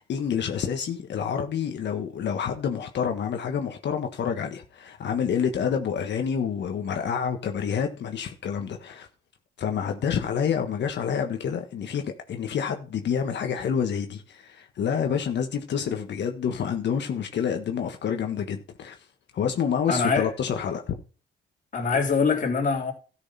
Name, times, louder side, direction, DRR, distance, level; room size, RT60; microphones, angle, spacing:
voice 1, 0.0-9.1 9.6-19.1 19.3-20.9, left 7 dB, 60° left, 1.4 m, -28 dB
voice 2, 19.9-20.3 21.7-22.9, left 5 dB, 40° left, 3.6 m, -23 dB
13.0 x 6.4 x 4.3 m
cardioid pair, 90°, 20 cm